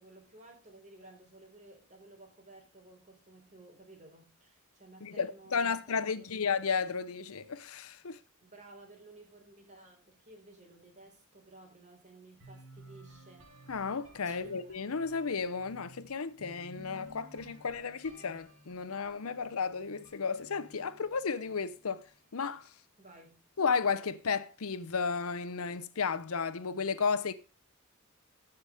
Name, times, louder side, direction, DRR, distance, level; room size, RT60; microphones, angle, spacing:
voice 1, 0.0-6.4 8.4-13.5 14.2-14.6 23.0-23.4, right 2 dB, 35° right, 3.7 m, -55 dB
voice 2, 5.0-8.2 13.7-22.0 22.3-22.7 23.6-27.3, left 5 dB, 80° left, 0.7 m, -33 dB
sound 1, 12.4-22.2, right 1 dB, 65° right, 2.6 m, -55 dB
14.5 x 5.9 x 4.8 m
head